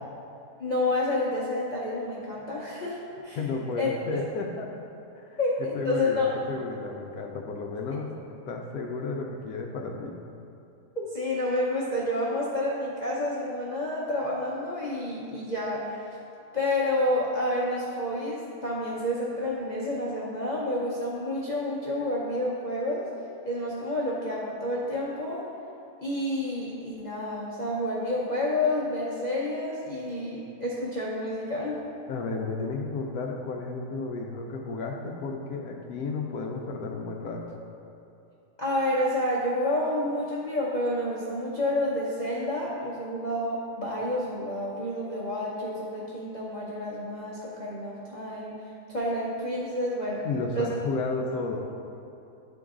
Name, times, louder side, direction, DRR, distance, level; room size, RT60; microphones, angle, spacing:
voice 1, 0.6-3.4 3.8-4.2 5.4-6.3 11.0-16.0 16.5-23.1 23.5-25.4 26.0-31.8 38.6-48.6 48.9-50.2 50.5-50.7, left 1 dB, 40° left, -7 dB, 0.6 m, -29 dB
voice 2, 3.4-4.7 5.2-8.1 8.5-10.2 32.1-37.6 50.2-51.6, left 3 dB, 70° left, 1 dB, 1.0 m, -33 dB
10.5 x 3.8 x 3.7 m, 2.7 s
omnidirectional pair, 1.8 m